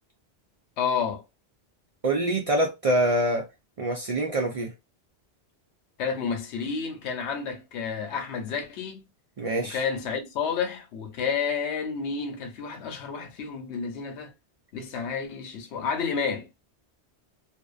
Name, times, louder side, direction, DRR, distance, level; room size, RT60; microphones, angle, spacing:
voice 1, 0.8-1.2 6.0-9.0 9.6-14.3 14.7-16.6, left 6 dB, 85° left, 0.9 m, -30 dB
voice 2, 2.0-3.4 3.8-4.7 9.4-9.8, right 1 dB, 65° right, 0.3 m, -25 dB
2.6 x 2.1 x 2.3 m
omnidirectional pair, 1.1 m